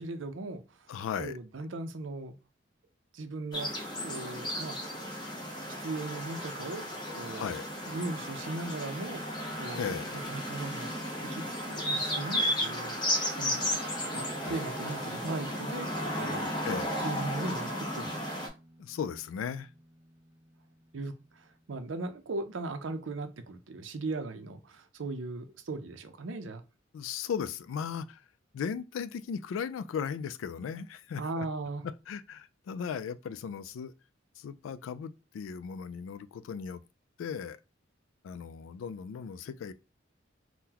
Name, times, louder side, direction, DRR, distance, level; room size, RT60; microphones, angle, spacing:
voice 1, 0.0-2.3 3.1-3.7 4.0-4.8 5.8-7.6 7.9-9.2 9.6-10.9 11.2-13.0 13.3-13.7 14.1-16.6 17.0-18.1 20.9-26.6 31.2-31.8, right 2 dB, 75° right, 0.5 m, -38 dB
voice 2, 0.9-1.4 7.3-7.7 9.8-10.3 14.4-14.6 16.6-17.0 18.8-19.7 26.9-28.2 28.5-31.5 31.8-33.9 34.4-36.8 37.2-37.6 38.2-39.7, left 7 dB, 85° left, 0.3 m, -37 dB
sound 1, 3.5-18.5, equal, 25° left, 0.7 m, -34 dB
Guitar, 13.1-21.9, right 1 dB, 15° right, 0.4 m, -50 dB
3.7 x 2.2 x 2.8 m
head